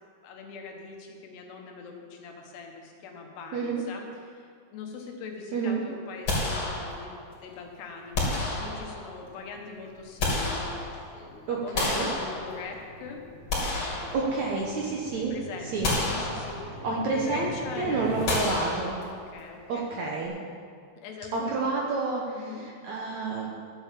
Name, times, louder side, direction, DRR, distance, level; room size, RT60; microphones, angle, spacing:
voice 1, 0.2-13.2 13.5-14.5 15.2-18.8 19.1-20.0 21.0-21.6 22.3-22.6, left 5 dB, 85° left, 1 dB, 3.5 m, -42 dB
voice 2, 3.5-3.8 5.5-5.8 11.5-12.1 14.1-15.3 15.7-15.9 16.3-16.5 16.8-17.5 17.8-19.0 19.7-20.4 21.3-23.5, right 4 dB, 65° right, -3 dB, 1.9 m, -29 dB
sound 1, 6.3-7.3 8.1-9.2 9.9-11.2 11.7-12.9 13.3-14.8 15.1-15.3 15.8-16.9 18.3-19.4, left 2 dB, 40° left, 3.6 m, -30 dB
sound 2, 7.3-18.2, right 1 dB, 35° right, 3.6 m, -46 dB
12.0 x 7.9 x 7.4 m, 2.2 s
omnidirectional pair, 4.6 m